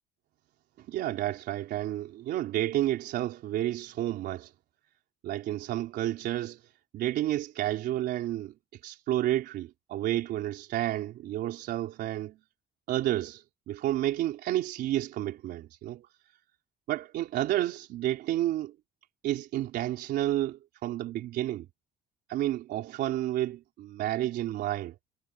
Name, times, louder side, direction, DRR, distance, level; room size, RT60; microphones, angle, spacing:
voice 1, 0.8-4.5 5.2-8.5 8.8-12.4 12.9-16.0 16.9-18.7 19.2-21.7 22.3-24.9, right 13 dB, 75° right, 3.7 m, -31 dB
cardioid pair, 110°, 17 cm